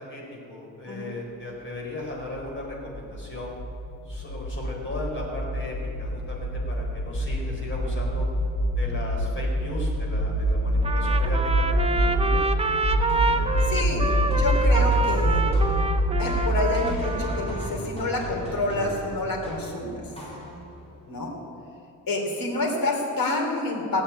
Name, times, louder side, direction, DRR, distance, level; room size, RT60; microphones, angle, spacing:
voice 1, 0.0-3.6 4.0-8.3 8.8-12.4, left 1 dB, 35° left, -2 dB, 4.4 m, -36 dB
sound 1, 2.2-17.5, equal, 65° left, 4.0 m, -26 dB
Trumpet, 10.8-17.8, right 3 dB, 20° right, 0.7 m, -27 dB
sound 2, 13.1-20.9, equal, 15° left, 4.0 m, -37 dB
voice 2, 13.7-14.1 14.4-15.4 16.2-20.0 21.1-21.4 22.1-24.0, left 2 dB, 85° left, 1 dB, 3.5 m, -28 dB
18.5 x 8.5 x 8.9 m, 2.7 s
wide cardioid pair, 150°, 34 cm